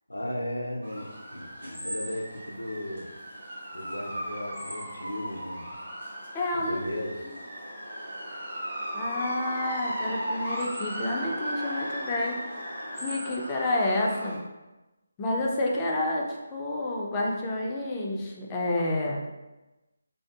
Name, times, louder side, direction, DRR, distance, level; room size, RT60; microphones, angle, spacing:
voice 1, 0.1-3.1 3.7-5.7 6.5-7.1, left 1 dB, 85° left, 0 dB, 0.4 m, -36 dB
sound 1, 0.8-14.4, equal, 80° right, 1.5 m, -36 dB
voice 2, 6.3-7.0 8.9-12.4 13.0-14.4 15.2-19.2, left 2 dB, 20° left, -2 dB, 0.3 m, -29 dB
2.5 x 2.4 x 2.3 m, 1.1 s
figure-of-eight pair, 155°, 0 cm